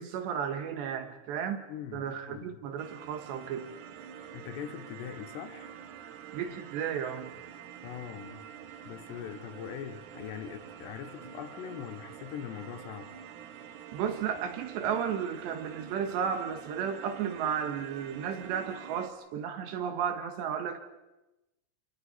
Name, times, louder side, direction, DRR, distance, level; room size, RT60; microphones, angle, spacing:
voice 1, 0.0-1.6 1.9-3.7 6.3-7.3 13.9-20.8, right 8 dB, 70° right, 3.4 m, -33 dB
voice 2, 1.7-2.6 4.3-5.7 7.8-8.5 8.9-13.1, left 9 dB, 75° left, 2.9 m, -42 dB
sound 1, 2.8-19.1, right 8 dB, 90° right, 1.7 m, -47 dB
27.5 x 27.0 x 4.2 m
omnidirectional pair, 5.5 m